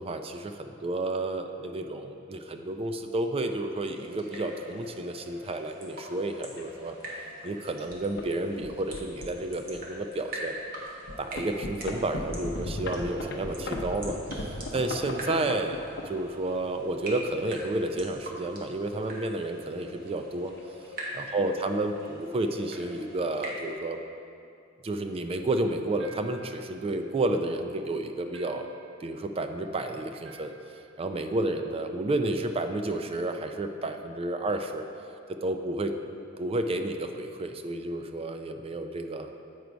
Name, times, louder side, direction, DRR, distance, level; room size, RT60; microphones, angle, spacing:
voice 1, 0.0-7.0 7.4-10.6 11.2-14.2 14.7-20.5 21.1-24.0 24.8-28.7 29.0-30.5 31.0-34.9 35.3-35.9 36.4-39.3, right 2 dB, 30° right, 6 dB, 0.4 m, -31 dB
sound 1, 3.9-23.7, equal, 45° right, 1.3 m, -43 dB
sound 2, 4.4-4.5 5.3-5.5 6.1-6.2 6.6-6.7 7.4-7.6 7.9-8.3 8.6-9.9 10.4-10.5 11.0-16.6 17.4-18.4 20.1-21.2 21.5-21.8 22.0-22.1 22.4-22.8, left 1 dB, 55° left, 0.7 m, -37 dB
sound 3, 26.0-26.5 28.3-28.8 30.2-30.7, right 3 dB, 65° right, 0.8 m, -50 dB
8.1 x 4.7 x 5.1 m, 2.5 s
head